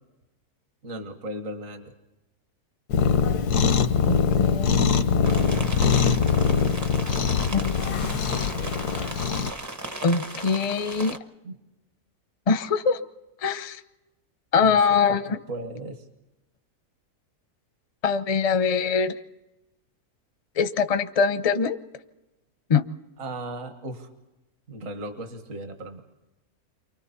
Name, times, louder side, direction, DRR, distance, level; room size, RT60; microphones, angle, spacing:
voice 1, 0.8-1.9 11.4-11.5 14.6-16.1 23.2-24.1 24.7-26.0, right 1 dB, 55° right, 6 dB, 2.0 m, -37 dB
Cat, 2.9-9.5, left 6 dB, 85° left, 1.5 m, -22 dB
voice 2, 4.1-5.2 6.2-6.6 7.5-8.5 10.0-11.1 12.5-13.0 13.4-13.8 14.5-15.4 18.0-19.2 20.6-21.8 22.7-22.8, left 5 dB, 35° left, 11 dB, 0.6 m, -24 dB
sound 1, 5.2-11.2, right 1 dB, 15° right, 0.7 m, -36 dB
30.0 x 24.5 x 4.2 m, 1.0 s
omnidirectional pair, 1.6 m